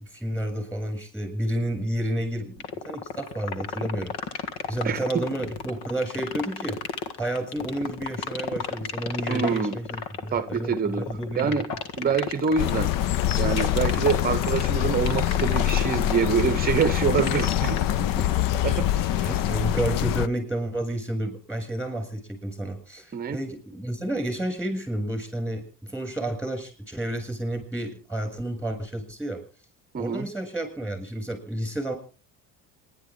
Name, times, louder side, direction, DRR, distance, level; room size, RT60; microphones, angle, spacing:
voice 1, 0.0-4.1 4.7-6.8 7.2-11.8 18.0-18.6 18.9-29.4 30.0-31.9, right 1 dB, 5° left, 7.5 m, -31 dB
sound 1, 2.6-18.5, left 6 dB, 90° left, 1.9 m, -32 dB
voice 2, 4.8-5.2 9.3-9.8 10.3-11.1 11.4-11.7 12.0-12.9 13.4-17.8 18.6-19.4 23.1-23.4 29.9-30.3, right 6 dB, 25° right, 0.8 m, -26 dB
sound 2, 12.6-20.3, left 13 dB, 65° left, 0.7 m, -25 dB
26.5 x 11.5 x 3.8 m
cardioid pair, 110°, 36 cm